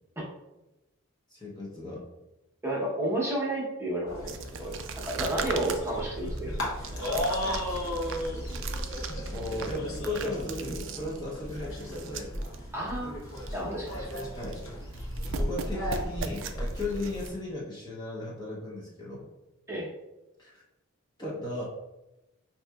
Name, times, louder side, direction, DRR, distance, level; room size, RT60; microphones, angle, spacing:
voice 1, 1.3-2.0 8.9-9.0 9.3-12.4 14.3-14.6 15.4-19.3 20.4-20.6 21.2-21.6, left 2 dB, 20° left, -5 dB, 0.6 m, -36 dB
voice 2, 2.6-6.6 12.7-13.2 13.5-14.1 19.7-19.9, right 1 dB, 10° right, -5 dB, 0.8 m, -31 dB
sound 1, 4.1-17.3, equal, 70° left, 1.0 m, -35 dB
sound 2, 4.3-12.6 12.9-13.0 13.3-13.6 13.9-14.7 14.9-17.3, right 7 dB, 55° right, 0.3 m, -40 dB
5.3 x 2.7 x 2.3 m, 0.99 s
head